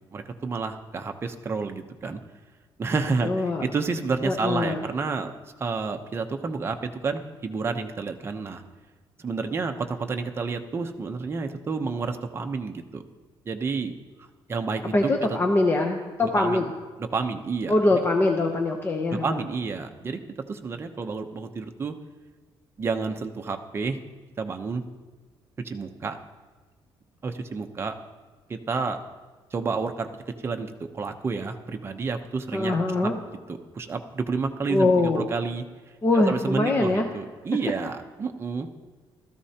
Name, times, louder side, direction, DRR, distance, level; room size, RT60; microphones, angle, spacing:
voice 1, 0.1-2.2 2.8-5.3 5.6-8.6 9.2-13.0 13.5-13.9 14.5-15.4 16.2-16.6 17.0-18.0 19.1-20.2 20.5-21.9 22.8-24.0 24.4-24.8 25.6-26.2 27.2-27.9 28.5-29.0 29.5-30.1 30.4-32.7 33.0-33.1 33.5-35.6 36.1-38.7, right 4 dB, 25° right, 5 dB, 0.7 m, -30 dB
voice 2, 3.2-3.6 4.2-4.8 14.9-16.7 17.7-19.4 32.5-33.2 34.7-35.3 36.0-37.1, left 2 dB, 25° left, 3 dB, 0.8 m, -23 dB
16.0 x 13.5 x 2.9 m, 1.4 s
cardioid pair, 155°, 9 cm